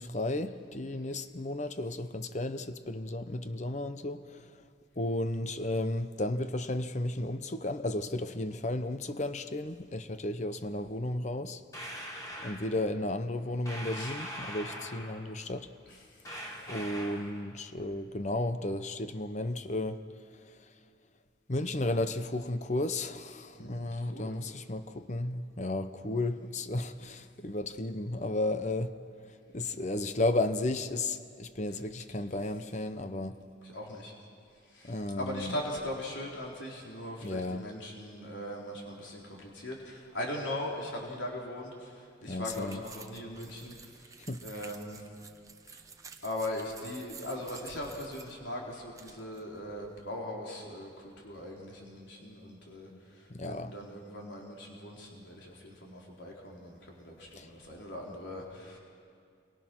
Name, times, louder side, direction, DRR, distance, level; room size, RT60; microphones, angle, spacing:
voice 1, 0.0-4.5 5.0-11.6 12.4-15.7 16.7-20.0 21.5-28.9 29.5-33.4 34.8-35.6 37.2-37.6 42.3-42.8 44.3-44.4 52.9-53.0 53.3-53.7 57.4-57.5, left 2 dB, 35° left, 0.9 m, -33 dB
sound 1, 11.7-12.6 13.7-15.2 16.2-17.3, equal, 20° left, 3.7 m, -41 dB
voice 2, 13.8-14.1 15.9-16.8 23.6-24.4 33.6-34.1 34.6-45.1 45.7-45.8 46.2-58.8, left 1 dB, 75° left, 3.9 m, -40 dB
sound 2, 42.5-50.0, right 5 dB, 15° right, 1.0 m, -52 dB
28.0 x 23.0 x 6.2 m
head